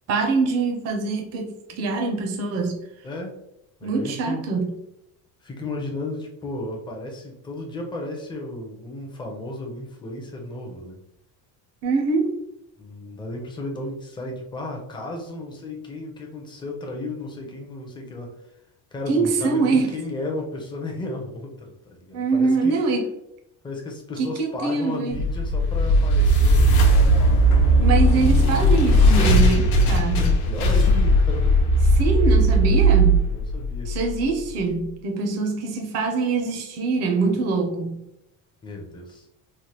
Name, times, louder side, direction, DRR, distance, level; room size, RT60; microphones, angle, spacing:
voice 1, 0.1-2.8 3.8-4.7 11.8-12.3 19.1-19.9 22.1-23.0 24.2-25.2 27.8-30.3 32.0-33.3 33.9-38.0, right 4 dB, 40° right, 2 dB, 0.5 m, -24 dB
voice 2, 3.0-3.4 3.8-4.4 5.4-11.0 12.8-18.5 18.9-22.8 23.6-27.3 30.1-31.7 33.3-33.9 38.6-39.3, left 2 dB, 10° left, 0 dB, 0.4 m, -34 dB
sound 1, 25.1-34.3, right 1 dB, 65° left, 0.7 m, -17 dB
3.2 x 2.1 x 2.8 m, 0.84 s
cardioid pair, 150°, 40 cm